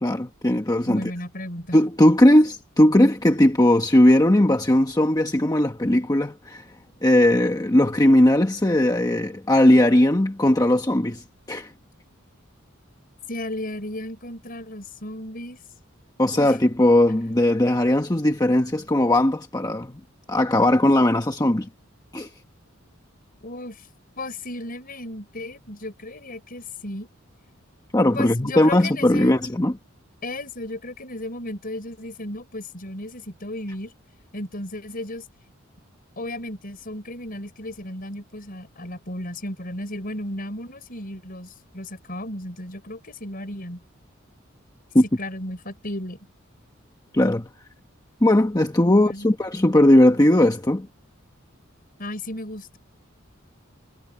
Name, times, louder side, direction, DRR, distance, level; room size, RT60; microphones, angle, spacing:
voice 1, 0.0-1.0 1.7-6.6 7.0-11.7 16.2-19.9 20.3-21.7 22.1-22.3 27.9-29.8 44.9-45.0 47.1-47.5 48.2-50.9, left 1 dB, 20° left, 1.1 m, -18 dB
voice 2, 0.8-1.8 13.3-15.6 16.3-16.6 23.4-23.8 24.2-27.1 28.1-29.4 30.2-33.9 34.3-35.2 36.2-43.8 45.2-46.2 48.9-49.3 52.0-52.8, left 1 dB, 45° left, 5.1 m, -34 dB
head